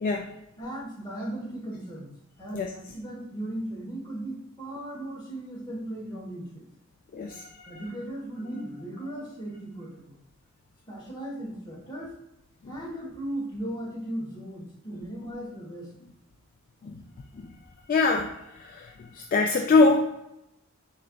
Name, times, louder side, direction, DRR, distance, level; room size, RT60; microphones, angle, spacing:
voice 1, 0.6-2.1 2.4-6.6 7.7-10.2 10.9-12.1 12.7-15.9, right 1 dB, 20° left, -4 dB, 1.2 m, -37 dB
voice 2, 17.9-18.3 18.8-18.9 19.3-20.1, left 3 dB, 40° left, 2 dB, 0.3 m, -22 dB
4.3 x 3.8 x 2.2 m, 0.87 s
head